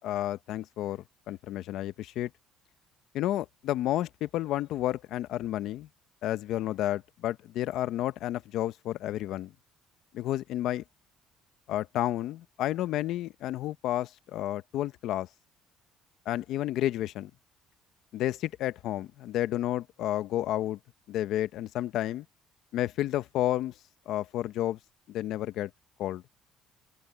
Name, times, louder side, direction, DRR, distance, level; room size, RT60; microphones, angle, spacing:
voice 1, 0.0-2.3 3.1-5.9 6.2-9.5 10.1-10.8 11.7-15.3 16.3-17.3 18.1-20.8 21.1-22.2 22.7-23.7 24.1-24.8 25.1-25.7 26.0-26.2, left 13 dB, 70° left, 0.8 m, -31 dB
cardioid pair, 125°, 0 cm